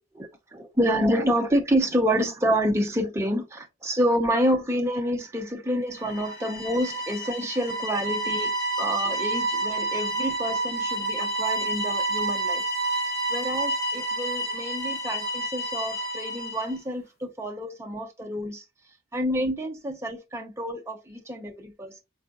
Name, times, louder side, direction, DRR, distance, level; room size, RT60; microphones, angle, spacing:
voice 1, 0.1-8.5 8.8-12.6 12.9-18.6 19.1-22.0, equal, 15° right, 0.5 m, -28 dB
sound 1, 6.0-16.7, right 2 dB, 15° left, 2.0 m, -29 dB
3.9 x 3.7 x 2.2 m
head